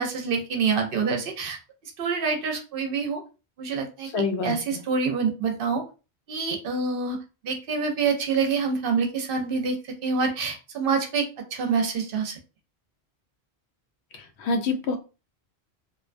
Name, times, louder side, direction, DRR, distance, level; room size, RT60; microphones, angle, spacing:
voice 1, 0.0-1.6 2.0-3.2 3.6-4.1 4.4-5.8 6.3-7.2 7.4-12.4, right 5 dB, 65° right, 3 dB, 0.7 m, -26 dB
voice 2, 4.1-4.8 14.4-15.0, left 3 dB, 90° left, 4 dB, 0.9 m, -26 dB
2.5 x 2.1 x 2.4 m, 0.31 s
omnidirectional pair, 1.1 m